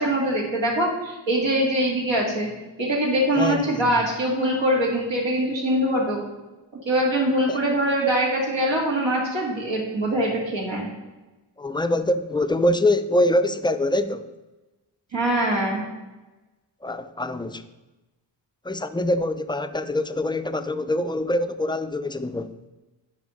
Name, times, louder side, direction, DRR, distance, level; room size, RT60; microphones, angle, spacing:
voice 1, 0.0-2.5 2.8-6.2 6.9-10.9 15.1-15.8, right 1 dB, 75° right, 2.3 m, -23 dB
voice 2, 3.4-4.1 7.5-7.6 11.6-14.3 16.8-17.6 18.6-22.5, left 1 dB, 10° left, 0.4 m, -24 dB
9.3 x 3.6 x 5.1 m
wide cardioid pair, 60°, 45 cm